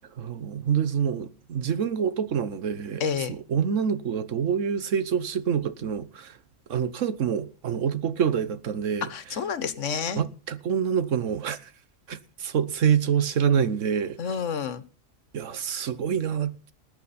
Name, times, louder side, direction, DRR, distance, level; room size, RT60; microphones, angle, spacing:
voice 1, 0.2-6.4 6.7-9.4 10.1-11.7 12.1-14.2 15.3-16.7, right 8 dB, 80° right, 1.4 m, -26 dB
voice 2, 3.0-3.3 9.1-10.2 14.2-14.8, left 6 dB, 75° left, 1.4 m, -29 dB
20.0 x 8.8 x 4.2 m
omnidirectional pair, 1.3 m